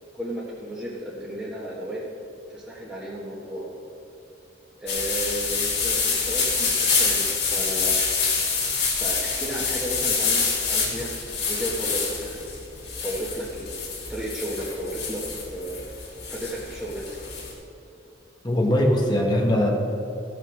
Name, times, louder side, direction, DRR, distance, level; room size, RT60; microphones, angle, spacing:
voice 1, 0.1-2.0 2.5-3.7 4.8-8.0 9.0-12.4 13.0-15.2 15.5-15.9 16.3-17.0, right 1 dB, 5° right, -7 dB, 1.4 m, -33 dB
sound 1, 4.9-17.5, left 5 dB, 65° left, 2.8 m, -26 dB
voice 2, 18.4-19.7, left 1 dB, 25° left, 1 dB, 1.1 m, -21 dB
15.0 x 6.1 x 6.3 m, 2.7 s
head